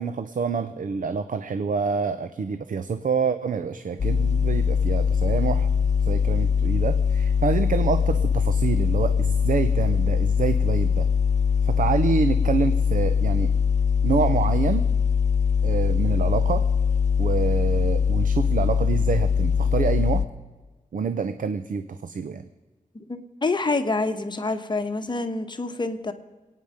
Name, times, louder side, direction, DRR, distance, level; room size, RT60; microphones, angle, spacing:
voice 1, 0.0-5.7 6.0-11.1 11.6-13.5 14.0-14.9 15.6-16.7 17.2-20.2 20.9-22.5, right 5 dB, 80° right, 11 dB, 0.7 m, -27 dB
sound 1, 4.0-20.3, left 6 dB, 60° left, 0.8 m, -22 dB
voice 2, 22.9-26.1, left 3 dB, 35° left, 7 dB, 1.2 m, -27 dB
27.0 x 9.4 x 5.1 m, 1.3 s
wide cardioid pair, 140°, 14 cm